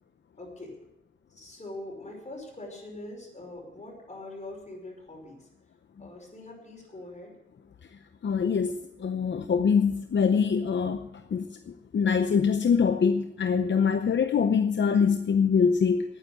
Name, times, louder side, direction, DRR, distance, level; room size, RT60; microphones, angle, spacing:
voice 1, 0.4-0.7 1.3-5.4 6.0-7.3, left 2 dB, 40° left, 0 dB, 5.5 m, -43 dB
voice 2, 8.2-11.0 11.3-11.5 11.9-16.0, left 6 dB, 75° left, 8 dB, 0.7 m, -24 dB
10.5 x 9.5 x 8.4 m, 0.86 s
wide cardioid pair, 85°, 19 cm